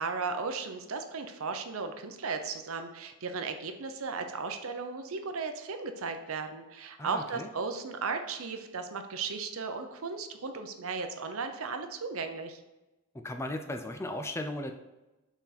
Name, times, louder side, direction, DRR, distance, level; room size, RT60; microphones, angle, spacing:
voice 1, 0.0-12.6, right 4 dB, 70° right, 7 dB, 0.7 m, -36 dB
voice 2, 7.0-7.5 13.1-14.7, left 1 dB, 10° left, 6 dB, 0.4 m, -36 dB
6.2 x 4.1 x 4.1 m, 1.0 s
head